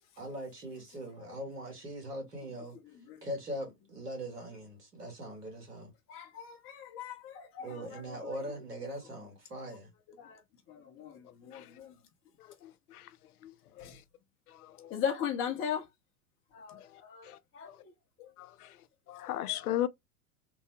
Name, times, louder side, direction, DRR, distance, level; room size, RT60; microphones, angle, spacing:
voice 1, 0.2-2.8 3.2-5.9 7.6-9.9, equal, 85° right, 1.8 m, -41 dB
voice 2, 6.1-8.4 10.2-10.4 10.7-11.9 13.8-13.9 14.9-15.8 16.5-17.9 18.2-18.3, left 8 dB, 30° left, 0.8 m, -38 dB
voice 3, 12.6-13.0 13.4-13.5 13.8-13.9 14.8-14.9 17.3-17.4 18.4-18.5 19.1-19.9, left 13 dB, 70° left, 0.5 m, -35 dB
3.4 x 2.1 x 3.1 m
figure-of-eight pair, 95°, 46 cm